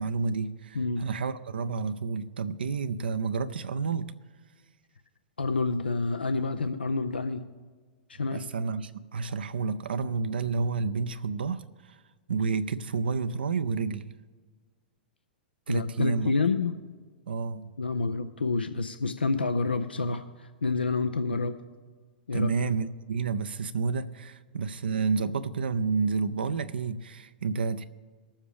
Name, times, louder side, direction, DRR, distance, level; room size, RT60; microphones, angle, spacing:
voice 1, 0.0-4.1 8.3-12.0 12.3-14.1 15.7-16.3 17.3-17.6 21.3-21.5 22.3-27.8, right 5 dB, 75° right, 0.4 m, -30 dB
voice 2, 5.4-7.4 8.1-8.4 15.7-16.7 17.8-21.5 22.3-22.5, left 3 dB, 90° left, 0.5 m, -28 dB
21.0 x 7.2 x 3.4 m
hypercardioid pair, 105°, 5 cm